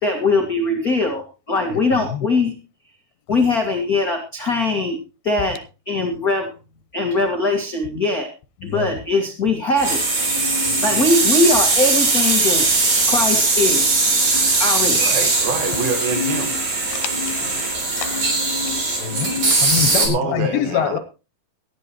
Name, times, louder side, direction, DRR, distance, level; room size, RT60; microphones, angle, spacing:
voice 1, 0.0-2.6 3.3-5.0 5.2-6.5 6.9-8.3 8.6-10.0 10.4-14.3 14.6-15.0 17.9-18.0, left 2 dB, 35° left, 2 dB, 1.6 m, -21 dB
sound 1, 9.8-20.1, right 3 dB, 50° right, 5.1 m, -19 dB
voice 2, 14.9-16.6 19.9-21.0, right 5 dB, 80° right, 6 dB, 3.3 m, -26 dB
voice 3, 19.0-19.4 19.6-21.0, left 11 dB, 80° left, 11 dB, 2.8 m, -24 dB
18.0 x 13.0 x 3.0 m, 0.32 s
omnidirectional pair, 4.2 m